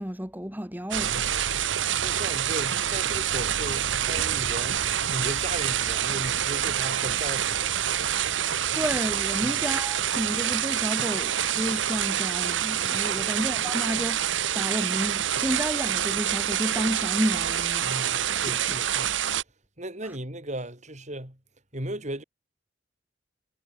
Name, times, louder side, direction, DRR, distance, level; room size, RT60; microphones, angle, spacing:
voice 1, 0.0-1.1 8.7-17.9 20.0-20.2, equal, 10° right, 2.8 m, -31 dB
sound 1, 0.9-19.4, right 10 dB, 85° right, 1.0 m, -27 dB
voice 2, 1.1-1.4 2.0-7.7 9.4-9.7 13.1-13.4 17.8-19.2 19.8-21.4 21.7-22.2, right 1 dB, 40° right, 7.3 m, -36 dB
head